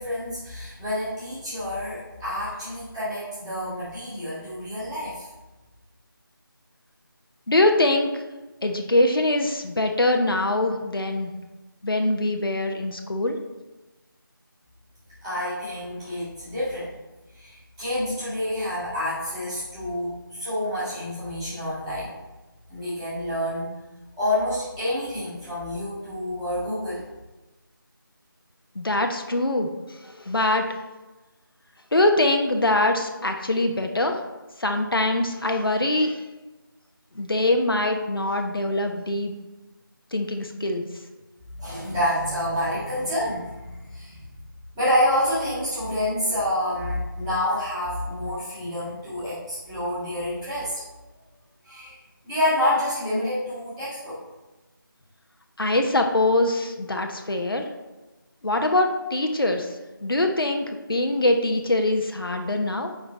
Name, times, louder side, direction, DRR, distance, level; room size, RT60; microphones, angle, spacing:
voice 1, 0.0-5.3 15.2-16.9 17.3-22.1 22.7-23.7 24.2-27.0 41.6-44.4 44.7-50.8 51.6-52.0 52.2-54.2, left 1 dB, 5° right, -14 dB, 1.7 m, -28 dB
voice 2, 7.5-8.2 8.6-11.3 11.8-13.4 28.7-29.7 30.0-30.6 31.9-34.2 34.6-36.2 37.1-39.3 40.1-40.9 55.6-57.7 58.4-59.7 60.0-62.9, left 2 dB, 80° left, 4 dB, 1.0 m, -23 dB
8.5 x 3.9 x 4.2 m, 1.1 s
figure-of-eight pair, 170°, 12 cm